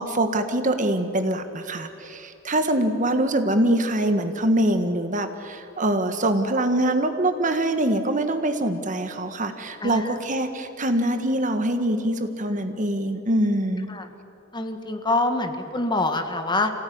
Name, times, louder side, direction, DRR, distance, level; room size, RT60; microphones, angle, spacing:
voice 1, 0.0-13.9, right 1 dB, 40° right, 7 dB, 1.6 m, -24 dB
voice 2, 14.5-16.7, left 2 dB, 25° left, 7 dB, 1.7 m, -25 dB
27.5 x 17.5 x 9.5 m, 2.9 s
head